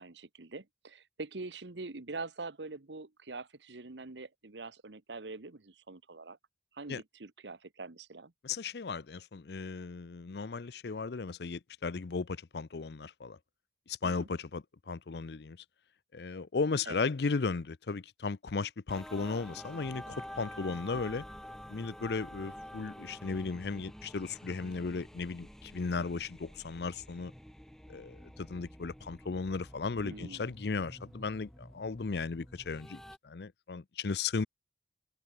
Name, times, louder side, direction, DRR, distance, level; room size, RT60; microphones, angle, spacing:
voice 1, 0.0-6.4 6.7-8.3 14.0-14.3 16.8-17.0 25.9-26.1 30.0-30.4, right 3 dB, 85° right, 1.2 m, -44 dB
voice 2, 8.4-13.4 13.9-15.6 16.1-21.2 21.7-27.3 27.9-34.5, left 4 dB, 65° left, 0.6 m, -36 dB
sound 1, 18.9-33.2, equal, 5° left, 1.3 m, -49 dB
head